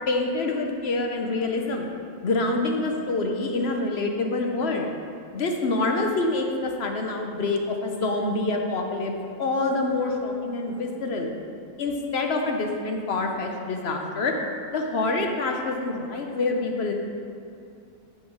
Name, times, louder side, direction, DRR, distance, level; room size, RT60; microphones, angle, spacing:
voice 1, 0.1-1.9 2.2-4.9 5.3-9.1 9.4-11.3 11.8-14.3 14.7-16.9, left 3 dB, 55° left, 2 dB, 0.9 m, -26 dB
9.0 x 4.5 x 6.1 m, 2.6 s
omnidirectional pair, 1.6 m